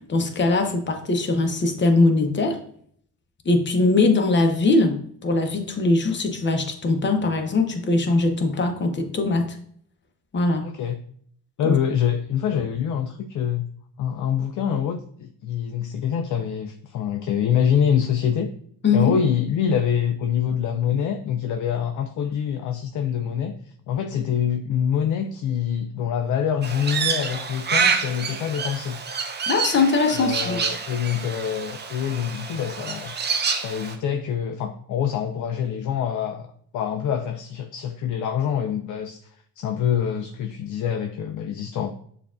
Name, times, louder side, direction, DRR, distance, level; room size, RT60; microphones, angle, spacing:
voice 1, 0.1-2.6 3.4-9.6 10.3-10.7 11.6-11.8 18.8-19.2 29.5-30.6, left 3 dB, 25° left, 0.8 m, -21 dB
voice 2, 10.6-11.0 11.6-13.7 14.0-18.5 18.9-29.0 30.1-33.1 33.5-39.3 39.6-41.9, left 8 dB, 50° left, 0.5 m, -25 dB
Crow, 26.6-33.9, right 5 dB, 25° right, 0.6 m, -27 dB
6.6 x 2.5 x 2.5 m
hypercardioid pair, 65°, 41 cm